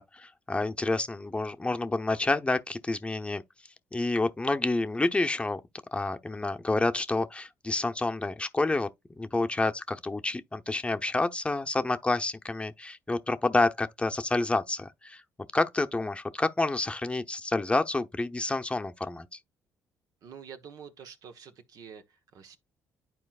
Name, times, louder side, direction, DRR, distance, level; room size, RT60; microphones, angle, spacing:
voice 1, 0.0-3.4 3.9-5.6 5.9-8.9 9.2-15.2 15.5-19.4, left 2 dB, 15° left, 0.8 m, -29 dB
voice 2, 20.2-22.6, right 7 dB, 65° right, 1.2 m, -47 dB
11.0 x 4.5 x 2.4 m
supercardioid pair, 65°, 7 cm